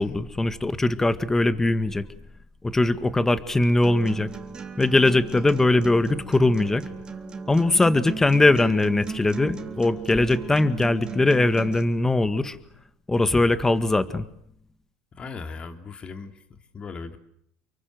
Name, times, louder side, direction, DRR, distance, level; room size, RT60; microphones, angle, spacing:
voice 1, 0.0-2.1 2.6-4.3 4.8-6.8 7.5-12.6 13.1-14.3, left 2 dB, 10° left, 12 dB, 1.8 m, -21 dB
Acoustic guitar, 3.8-11.8, right 5 dB, 25° right, 3.6 m, -37 dB
voice 2, 15.2-17.2, left 4 dB, 30° left, 7 dB, 3.2 m, -38 dB
29.0 x 23.5 x 7.9 m, 0.70 s
supercardioid pair, 105°, 3 cm